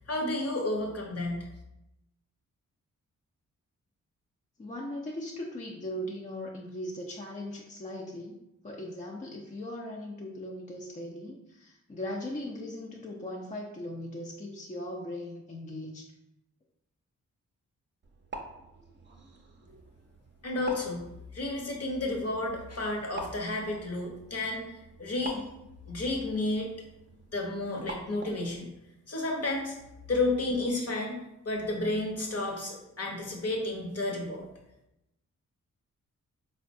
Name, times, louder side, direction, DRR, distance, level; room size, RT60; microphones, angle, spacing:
voice 1, 0.1-1.5 20.4-21.0 21.3-25.4 25.9-26.7 27.3-28.7 29.1-29.8 30.1-31.2 31.4-34.5, left 2 dB, 45° left, 0 dB, 0.9 m, -31 dB
voice 2, 4.6-8.4 8.6-16.1, left 1 dB, 20° left, -1 dB, 0.5 m, -39 dB
sound 1, 18.0-28.6, right 3 dB, 30° right, 0.6 m, -47 dB
3.7 x 2.2 x 2.6 m, 0.89 s
supercardioid pair, 40°, 35 cm